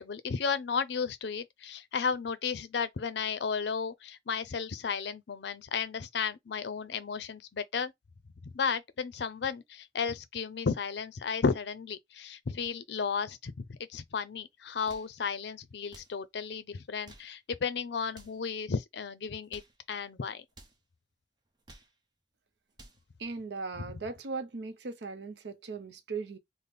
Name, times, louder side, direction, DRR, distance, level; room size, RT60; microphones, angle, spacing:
voice 1, 0.0-7.9 8.5-19.6 19.9-20.4, left 5 dB, 70° left, 0.5 m, -33 dB
sound 1, 14.7-15.2 15.8-16.2 16.9-17.4 18.1-18.4 19.3-19.8 20.5-20.8 21.4-22.0 22.5-23.1, right 2 dB, 25° right, 0.7 m, -55 dB
voice 2, 23.2-26.4, right 4 dB, 70° right, 0.6 m, -38 dB
3.5 x 2.1 x 4.0 m
head